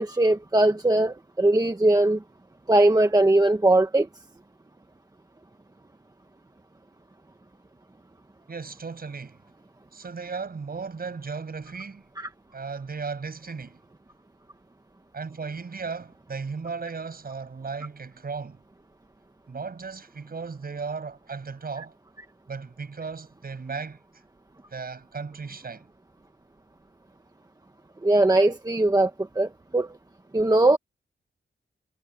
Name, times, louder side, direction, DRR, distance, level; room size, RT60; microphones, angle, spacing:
voice 1, 0.0-2.2 2.7-4.1 12.2-12.3 28.0-30.0 30.3-30.8, right 2 dB, 20° right, 1.2 m, -20 dB
voice 2, 8.5-9.4 9.9-12.0 12.5-13.8 15.1-18.6 19.5-21.9 22.5-24.0 24.7-25.9, right 5 dB, 50° right, 7.4 m, -36 dB
wide cardioid pair, 135°, 20 cm